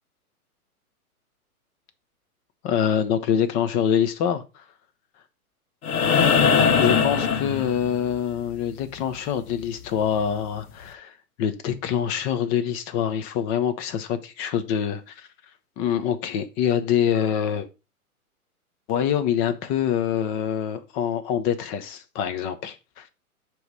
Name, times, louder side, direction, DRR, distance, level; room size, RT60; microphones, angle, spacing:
voice 1, 2.6-4.6 6.1-6.2 6.7-11.1 11.4-15.3 15.8-17.7 18.9-23.1, left 9 dB, 20° left, 0.5 m, -25 dB
sound 1, 5.8-8.2 10.0-10.1, left 6 dB, 75° left, 1.2 m, -20 dB
7.8 x 3.1 x 5.1 m
hypercardioid pair, 125°, 45 cm